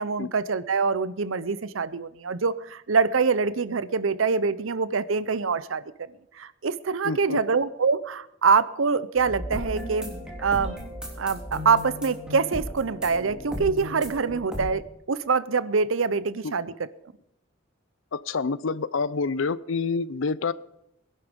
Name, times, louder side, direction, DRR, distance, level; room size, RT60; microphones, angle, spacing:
voice 1, 0.0-5.8 6.4-10.1 10.4-10.8 11.2-16.7, right 5 dB, 80° right, 16 dB, 0.7 m, -25 dB
voice 2, 7.0-7.4 16.4-16.5 18.1-20.5, left 4 dB, 75° left, 19 dB, 0.6 m, -27 dB
sound 1, 9.2-14.7, equal, 5° right, 3.2 m, -36 dB
21.0 x 11.0 x 5.3 m, 0.82 s
head